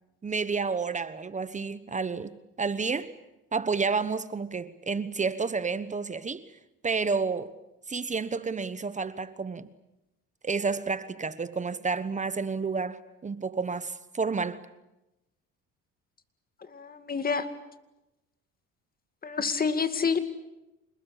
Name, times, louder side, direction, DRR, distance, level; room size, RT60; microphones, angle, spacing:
voice 1, 0.2-2.3 2.6-3.1 3.5-6.4 6.8-7.5 7.9-9.7 10.4-14.6, right 4 dB, 25° right, 1.2 m, -30 dB
voice 2, 16.7-17.5 19.2-20.2, left 5 dB, 30° left, 2.3 m, -28 dB
27.5 x 20.5 x 8.3 m
cardioid pair, 105°, 32 cm